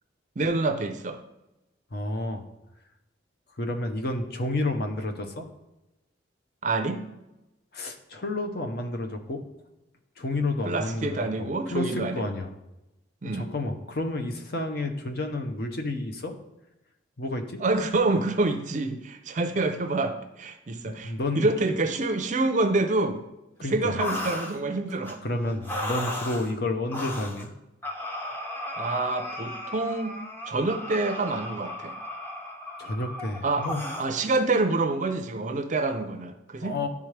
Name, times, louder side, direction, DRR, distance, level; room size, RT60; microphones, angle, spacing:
voice 1, 0.4-1.2 6.6-7.0 10.6-12.3 13.2-13.5 17.6-23.2 23.6-25.2 28.8-30.2 30.5-32.0 33.4-33.7 34.0-36.8, right 2 dB, 40° right, 7 dB, 0.5 m, -27 dB
voice 2, 1.9-2.5 3.6-5.5 7.7-9.4 10.2-12.5 13.3-16.3 17.2-17.6 20.8-21.5 23.6-24.0 25.2-27.5 32.8-33.8 36.6-36.9, left 2 dB, 50° left, 5 dB, 0.7 m, -30 dB
sound 1, 24.0-24.6 25.0-25.1 25.6-26.5 26.9-27.5 27.8-34.1, left 1 dB, 10° left, 0.6 m, -35 dB
10.5 x 3.6 x 3.2 m, 0.93 s
head